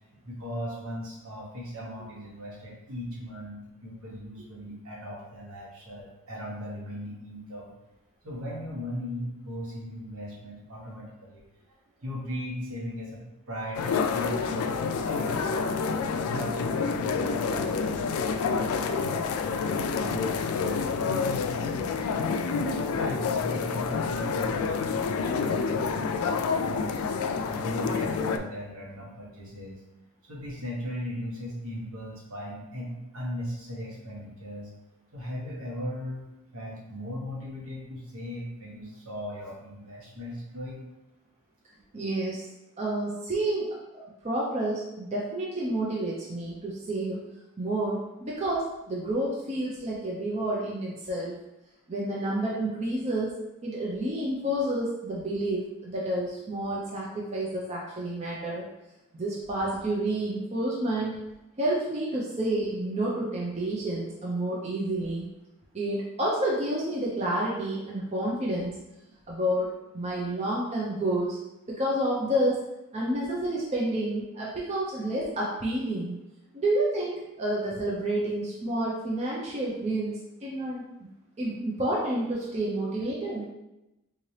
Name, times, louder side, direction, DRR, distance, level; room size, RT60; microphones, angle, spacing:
voice 1, 0.2-7.7 8.2-11.4 12.0-15.8 16.1-22.0 22.5-26.4 26.6-27.0 27.4-29.8 30.3-34.7 35.1-36.2 36.5-40.8, equal, 75° right, -4 dB, 1.1 m, -38 dB
sound 1, 13.7-28.4, left 5 dB, 75° left, 0.3 m, -28 dB
voice 2, 41.9-42.5 42.8-43.7 44.2-47.2 47.6-51.3 51.9-53.3 53.6-58.6 59.1-61.2 61.6-65.2 65.7-68.8 69.3-71.4 71.7-72.6 72.9-76.2 76.5-80.8 81.4-83.4, right 1 dB, 30° right, -4 dB, 0.5 m, -29 dB
3.7 x 2.8 x 3.2 m, 0.95 s
head